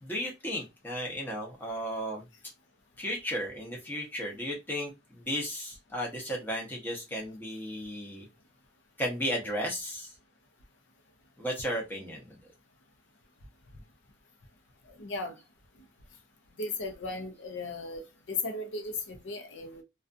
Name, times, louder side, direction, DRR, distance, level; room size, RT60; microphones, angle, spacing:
voice 1, 0.0-2.2 3.0-8.3 9.0-10.1 11.4-12.4, equal, 10° left, 0.8 m, -34 dB
voice 2, 15.0-15.4 16.6-18.0 18.3-19.8, left 3 dB, 80° left, 0.6 m, -36 dB
2.4 x 2.3 x 2.5 m
head